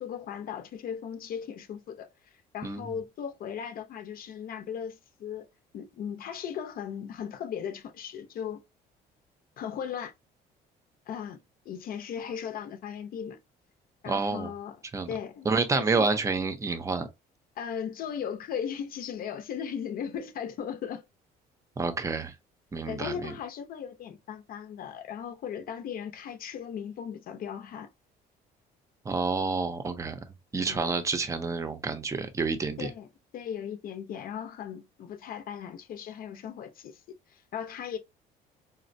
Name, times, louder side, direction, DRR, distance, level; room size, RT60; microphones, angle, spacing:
voice 1, 0.0-5.5 5.7-8.6 9.6-10.1 11.1-11.4 11.7-13.4 14.0-14.8 15.1-15.5 15.7-16.1 17.6-21.0 22.9-27.9 30.6-30.9 32.8-33.1 33.3-37.0 37.3-38.0, left 8 dB, 60° left, 0.6 m, -37 dB
voice 2, 14.1-14.5 14.9-15.1 15.5-17.1 21.8-22.3 22.7-23.3 29.1-30.2 30.5-32.9, right 4 dB, 20° right, 0.6 m, -29 dB
4.1 x 2.0 x 2.6 m
cardioid pair, 110°, 17 cm